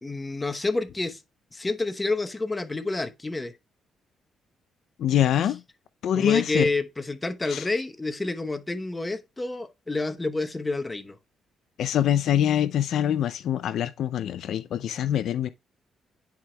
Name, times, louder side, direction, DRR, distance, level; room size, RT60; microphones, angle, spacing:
voice 1, 0.0-1.2 1.5-3.5 6.1-11.2, left 3 dB, 20° left, 0.8 m, -28 dB
voice 2, 5.0-5.6 6.0-6.7 7.5-7.7 11.8-15.5, left 10 dB, 70° left, 0.4 m, -24 dB
10.5 x 4.7 x 2.2 m
cardioid pair, 90°, 0 cm